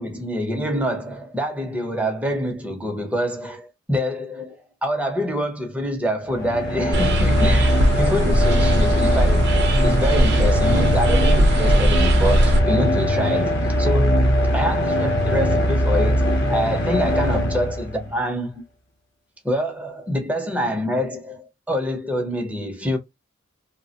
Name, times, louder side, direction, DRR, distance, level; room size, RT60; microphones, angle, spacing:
voice 1, 0.0-9.4 9.8-14.2 14.5-18.6 19.4-23.0, equal, 5° right, 0.7 m, -26 dB
sound 1, 6.3-18.2, equal, 55° left, 0.8 m, -20 dB
sound 2, 6.9-12.6, right 1 dB, 55° right, 0.6 m, -19 dB
3.2 x 2.1 x 2.8 m
head